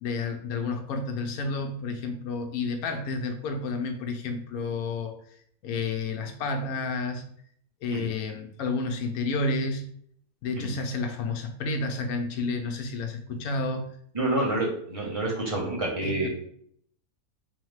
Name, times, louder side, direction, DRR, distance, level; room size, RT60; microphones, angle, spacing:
voice 1, 0.0-5.1 5.6-7.2 7.8-9.9 10.4-14.0 16.0-16.3, left 3 dB, 75° left, 5 dB, 1.0 m, -30 dB
voice 2, 14.1-16.3, right 1 dB, 30° right, -3 dB, 0.8 m, -28 dB
3.8 x 3.0 x 3.1 m, 0.65 s
omnidirectional pair, 1.6 m